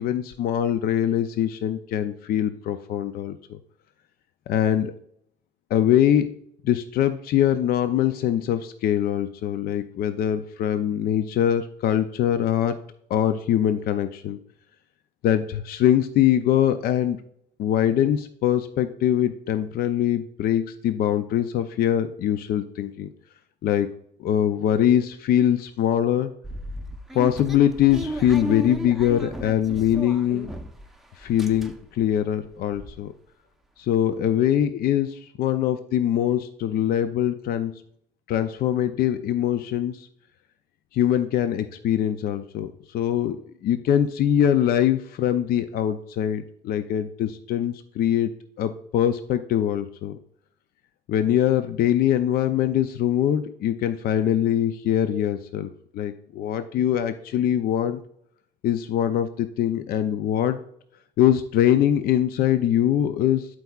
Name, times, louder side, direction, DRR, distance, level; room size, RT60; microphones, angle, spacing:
voice 1, 0.0-3.6 4.5-4.9 5.7-6.3 6.6-12.8 13.1-14.4 15.2-17.2 17.6-23.1 23.6-23.9 24.2-26.3 27.1-30.5 31.2-33.1 33.8-37.8 38.3-40.1 40.9-48.3 48.6-50.2 51.1-58.0 58.6-60.6 61.2-63.5, left 10 dB, 65° left, 10 dB, 0.5 m, -23 dB
sound 1, 26.4-30.9 31.2-32.0 32.4-32.5 32.7-32.9, equal, ahead, 0.7 m, -34 dB
11.5 x 4.7 x 2.3 m, 0.70 s
cardioid pair, 110°, 17 cm